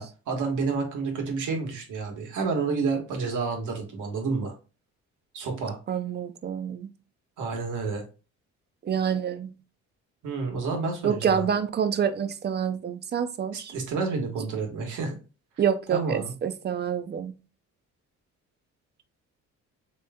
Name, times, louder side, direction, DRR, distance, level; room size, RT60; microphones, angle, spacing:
voice 1, 0.0-4.5 5.3-5.8 7.4-8.0 10.2-11.5 13.5-15.2 15.9-16.3, right 4 dB, 85° right, 1.3 m, -29 dB
voice 2, 5.9-6.9 8.8-9.5 11.0-13.7 15.6-17.4, right 8 dB, 35° right, 0.5 m, -27 dB
3.2 x 3.0 x 3.4 m
cardioid pair, 90°, 30 cm